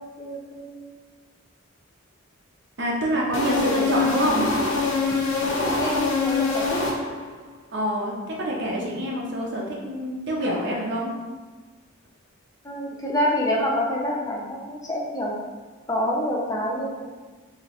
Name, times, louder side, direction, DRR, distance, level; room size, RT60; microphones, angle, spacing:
voice 1, 0.2-0.9 5.4-6.8 12.6-15.3 15.9-17.0, equal, 15° left, -3 dB, 0.5 m, -27 dB
voice 2, 2.8-4.5 5.0-5.2 7.7-8.1 8.4-11.1, equal, 55° right, -2 dB, 0.6 m, -26 dB
sound 1, 3.3-7.4, left 4 dB, 75° left, 0.7 m, -24 dB
3.0 x 2.9 x 2.9 m, 1.3 s
head